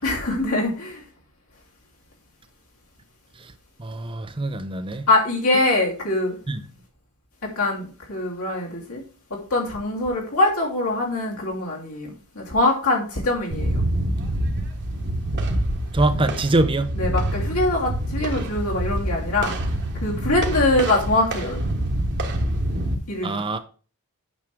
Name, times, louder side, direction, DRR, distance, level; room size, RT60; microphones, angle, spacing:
voice 1, 0.0-1.0 5.1-6.4 7.5-9.0 9.5-13.8 16.1-16.3 16.9-19.5 20.0-21.6 23.1-23.4, left 2 dB, 75° left, 3.3 m, -23 dB
voice 2, 3.8-5.1 6.5-6.6 15.9-16.9 23.2-23.6, right 2 dB, 25° right, 0.6 m, -23 dB
sound 1, 13.5-23.0, right 1 dB, 50° right, 1.4 m, -26 dB
8.7 x 6.3 x 3.6 m
head